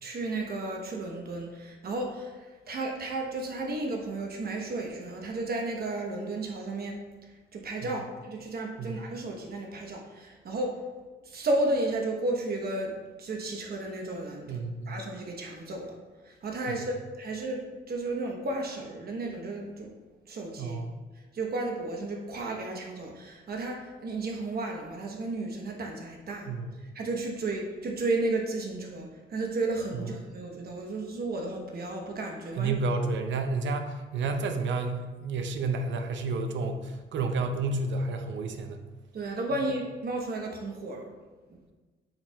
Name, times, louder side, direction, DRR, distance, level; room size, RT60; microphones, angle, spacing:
voice 1, 0.0-7.0 7.5-10.8 11.2-14.5 14.9-15.9 16.2-17.6 17.9-19.9 20.3-20.8 21.3-26.5 26.9-32.7 39.1-41.1 41.5-41.7, right 2 dB, 50° right, 1 dB, 1.0 m, -33 dB
voice 2, 14.5-14.9 16.7-16.9 20.6-20.9 26.5-26.7 32.6-38.8, right 3 dB, 70° right, 6 dB, 0.7 m, -30 dB
9.2 x 4.5 x 2.3 m, 1.3 s
cardioid pair, 90°, 20 cm